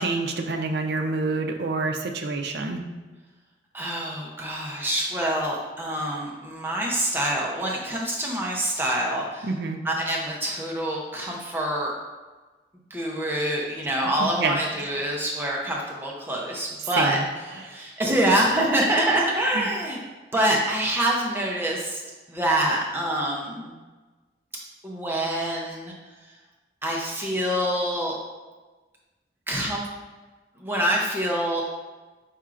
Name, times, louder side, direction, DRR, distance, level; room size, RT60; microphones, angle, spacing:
voice 1, 0.0-2.8 9.4-9.8 14.4-14.8 17.0-17.6 19.5-19.7, right 3 dB, 65° right, 4 dB, 0.5 m, -27 dB
voice 2, 3.7-9.5 9.8-11.9 12.9-17.2 17.5-20.0 20.3-22.0 22.3-23.7 24.8-25.9 26.8-28.2 29.5-29.9 30.6-31.6, right 1 dB, 10° right, -2 dB, 0.5 m, -26 dB
4.9 x 4.3 x 2.4 m, 1.3 s
head